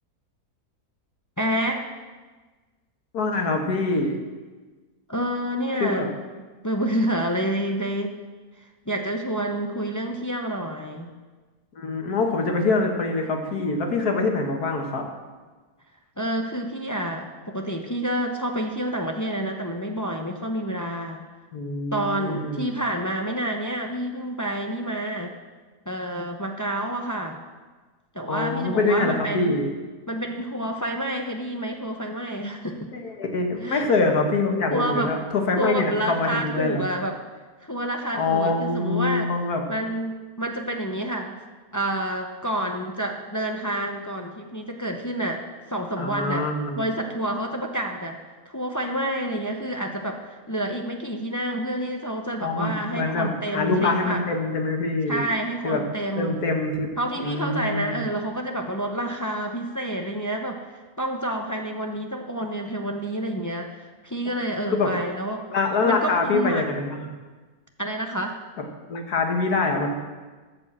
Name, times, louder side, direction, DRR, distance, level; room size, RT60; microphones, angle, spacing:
voice 1, 1.4-1.9 5.1-6.1 6.6-8.1 8.6-11.1 16.2-21.2 21.9-25.3 25.9-27.4 28.1-29.5 30.1-32.9 33.6-33.8 34.7-35.1 35.6-37.2 37.6-39.3 39.7-41.4 41.7-45.4 45.7-46.5 46.8-48.2 48.4-54.2 55.1-56.4 57.0-65.4 65.8-66.6 67.8-68.4, right 1 dB, 20° left, 3 dB, 0.4 m, -28 dB
voice 2, 3.1-4.2 5.8-6.1 11.8-15.1 21.5-22.7 28.3-29.7 32.9-36.9 38.1-39.6 46.0-46.8 52.4-55.2 55.6-55.8 56.2-56.9 57.2-58.0 64.7-64.9 65.5-67.1 68.9-69.9, left 3 dB, 70° left, 3 dB, 1.9 m, -24 dB
14.0 x 5.4 x 7.4 m, 1.3 s
omnidirectional pair, 1.7 m